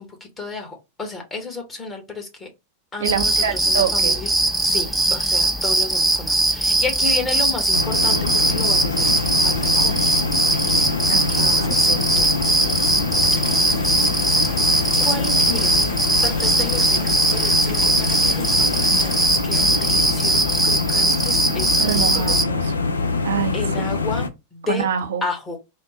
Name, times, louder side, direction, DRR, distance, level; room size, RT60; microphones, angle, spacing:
voice 1, 0.0-2.5 2.9-4.3 4.6-10.2 11.3-12.3 15.0-15.9 16.2-22.4 23.5-24.9 25.2-25.6, left 3 dB, 15° left, 1.2 m, -32 dB
sound 1, 3.0-22.4, right 2 dB, ahead, 0.6 m, -20 dB
voice 2, 3.0-4.2 11.1-11.8 21.8-22.7 23.2-23.6 24.6-25.2, right 7 dB, 60° right, 0.4 m, -25 dB
sound 2, 7.7-24.3, left 3 dB, 75° left, 0.4 m, -25 dB
sound 3, 8.9-19.3, left 3 dB, 50° left, 1.3 m, -38 dB
3.6 x 2.1 x 3.7 m
figure-of-eight pair, 90°, 0 cm